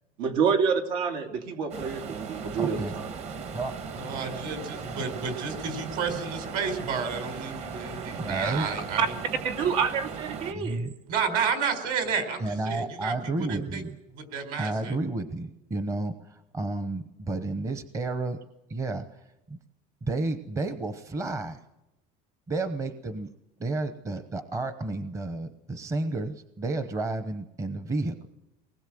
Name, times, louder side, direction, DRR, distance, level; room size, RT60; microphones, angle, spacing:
voice 1, 0.2-3.1 9.0-9.1 9.4-10.9, right 6 dB, 85° right, 5 dB, 2.9 m, -27 dB
sound 1, 1.7-10.5, right 5 dB, 40° right, 1.4 m, -38 dB
voice 2, 2.6-3.0 3.5-4.2 8.2-8.7 10.5-10.9 12.4-14.0 14.6-18.4 18.7-19.0 19.5-19.6 20.0-21.6 22.5-23.3 23.6-28.1, right 2 dB, 15° right, 10 dB, 0.9 m, -31 dB
voice 3, 3.9-9.2 11.1-13.8 14.1-15.0, right 6 dB, 55° right, 8 dB, 4.5 m, -31 dB
23.5 x 20.0 x 7.7 m, 0.93 s
cardioid pair, 175°, 18 cm